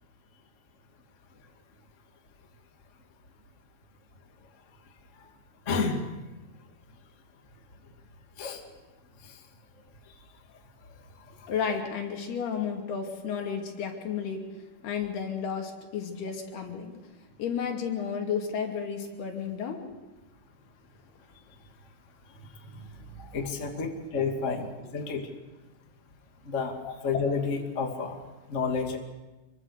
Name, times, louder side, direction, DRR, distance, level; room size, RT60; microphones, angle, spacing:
voice 1, 5.7-6.0 8.4-8.6 9.2-9.3 22.7-22.9 23.2-24.7 24.9-25.2 26.5-26.8 27.0-28.2 28.5-29.0, left 5 dB, 25° left, 2 dB, 1.9 m, -30 dB
voice 2, 11.5-14.4 14.8-17.0 17.4-20.0 24.4-24.6 26.8-26.9, left 7 dB, 65° left, 2 dB, 4.5 m, -32 dB
26.5 x 23.0 x 6.6 m, 1.1 s
omnidirectional pair, 4.9 m